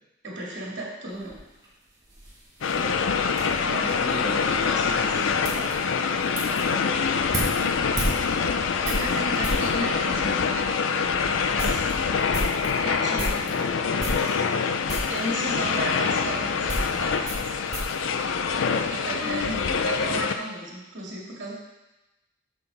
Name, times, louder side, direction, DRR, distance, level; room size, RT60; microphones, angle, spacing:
voice 1, 0.2-1.4 3.6-4.3 4.6-5.2 8.8-11.9 12.3-14.6 15.1-18.2 18.5-19.5 19.8-21.5, right 1 dB, 65° right, -3 dB, 2.2 m, -35 dB
sound 1, 1.1-9.7 10.5-10.6 11.0-11.1 11.4-13.6 14.0-14.6 14.9-15.2 16.1-19.0 19.2-19.8, right 1 dB, 20° right, 1.9 m, -34 dB
sound 2, 2.6-20.3, left 5 dB, 90° left, 0.5 m, -25 dB
voice 2, 2.7-3.0 3.7-4.7 5.1-5.8 6.6-7.4 19.2-19.8, left 2 dB, 50° left, -15 dB, 3.0 m, -36 dB
7.8 x 6.1 x 4.0 m, 1.0 s
head